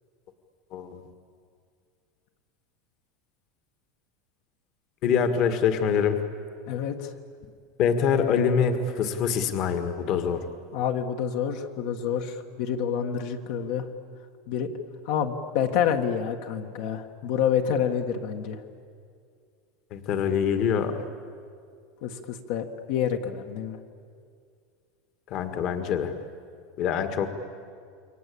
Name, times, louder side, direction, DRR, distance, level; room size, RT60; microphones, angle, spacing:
voice 1, 0.7-1.0 5.0-6.2 7.8-10.4 19.9-21.1 25.3-26.1 26.8-27.3, left 7 dB, 40° left, 8 dB, 1.7 m, -25 dB
voice 2, 6.7-7.1 10.7-13.9 14.5-14.7 15.1-18.6 22.0-23.8, left 8 dB, 55° left, 4 dB, 1.7 m, -28 dB
29.0 x 23.5 x 8.6 m, 2.2 s
supercardioid pair, 170°, 0 cm